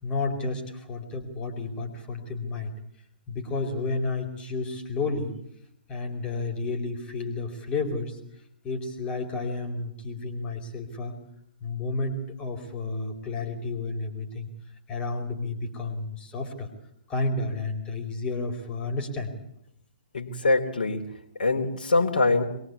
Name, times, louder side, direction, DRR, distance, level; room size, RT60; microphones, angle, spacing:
voice 1, 0.0-2.7 3.3-5.3 5.9-8.2 8.6-11.2 11.6-14.5 14.9-16.7 17.1-19.3, left 3 dB, 20° left, 4 dB, 4.9 m, -31 dB
voice 2, 20.1-21.1 21.4-22.4, left 3 dB, 60° left, 4 dB, 3.7 m, -23 dB
25.0 x 23.0 x 8.5 m, 0.71 s
figure-of-eight pair, 120°, 5 cm